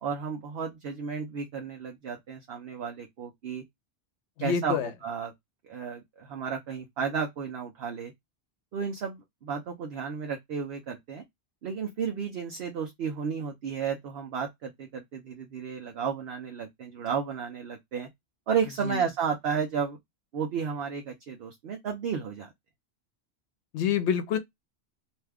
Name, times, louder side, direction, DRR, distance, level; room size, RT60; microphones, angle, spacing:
voice 1, 0.0-3.6 4.4-5.3 5.6-8.1 8.7-11.2 11.6-18.1 18.5-20.0 20.3-22.5, right 6 dB, 65° right, 0.9 m, -33 dB
voice 2, 4.4-4.9 18.8-19.0 23.7-24.4, left 8 dB, 90° left, 0.9 m, -27 dB
2.8 x 2.3 x 3.3 m
omnidirectional pair, 1.1 m